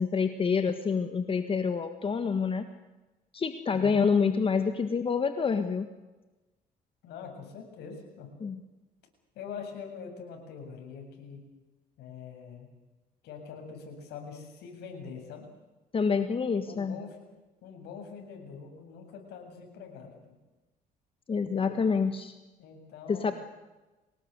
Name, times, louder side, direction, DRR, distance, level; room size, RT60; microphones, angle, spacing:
voice 1, 0.0-2.7 3.3-5.9 8.4-8.6 15.9-17.0 21.3-22.3 23.1-23.3, left 5 dB, 30° left, 9 dB, 1.6 m, -27 dB
voice 2, 3.7-4.0 7.0-8.3 9.3-11.4 12.0-12.7 13.2-15.5 16.7-17.2 17.6-20.3 22.6-23.3, left 6 dB, 80° left, 3 dB, 7.6 m, -44 dB
25.0 x 19.0 x 8.2 m, 1.1 s
cardioid pair, 110°, 17 cm